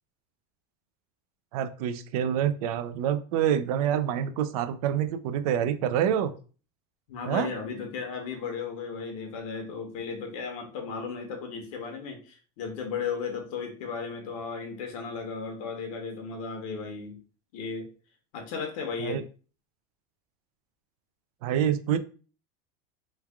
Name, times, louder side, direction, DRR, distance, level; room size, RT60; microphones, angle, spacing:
voice 1, 1.5-6.3 7.3-7.5 19.0-19.2 21.4-22.0, right 9 dB, 90° right, 12 dB, 0.5 m, -27 dB
voice 2, 7.1-17.2 17.5-17.9 18.3-19.2, left 5 dB, 70° left, 3 dB, 0.9 m, -35 dB
3.2 x 2.3 x 3.4 m, 0.37 s
cardioid pair, 175°, 19 cm